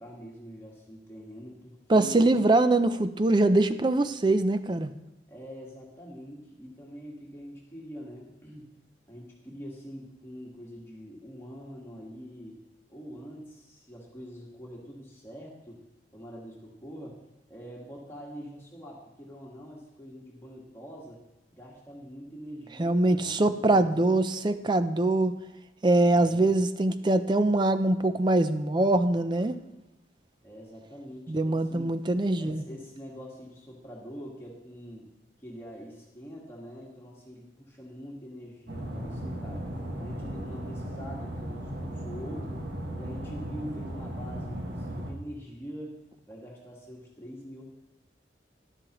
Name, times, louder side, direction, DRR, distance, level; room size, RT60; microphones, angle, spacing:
voice 1, 0.0-2.3 5.3-8.7 9.1-12.6 12.9-15.8 16.1-17.2 17.5-21.2 21.5-24.1 26.1-26.5 30.4-31.9 32.4-35.1 35.4-39.7 40.0-42.7 43.0-46.0 46.3-47.6, equal, 15° left, -3 dB, 1.5 m, -44 dB
voice 2, 1.9-4.9 22.8-25.4 25.8-29.6 31.3-32.6, right 2 dB, 25° right, 11 dB, 0.4 m, -23 dB
sound 1, 38.7-45.1, right 1 dB, 70° right, 1.7 m, -36 dB
12.5 x 11.5 x 3.0 m, 0.94 s
head